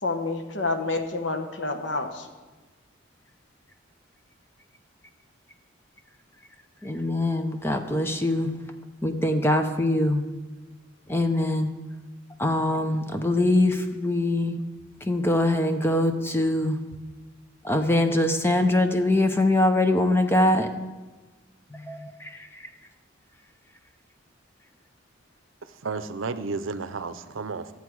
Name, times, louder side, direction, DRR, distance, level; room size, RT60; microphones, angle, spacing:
voice 1, 0.0-2.3 13.3-13.4, left 3 dB, 65° left, 1.1 m, -28 dB
voice 2, 6.8-8.5 9.0-10.2 11.1-11.7 12.4-14.6 15.0-16.8 17.6-20.7 21.7-22.7, left 1 dB, 10° left, 0.6 m, -23 dB
voice 3, 25.8-27.7, right 4 dB, 75° right, 0.6 m, -32 dB
13.0 x 8.2 x 4.7 m
head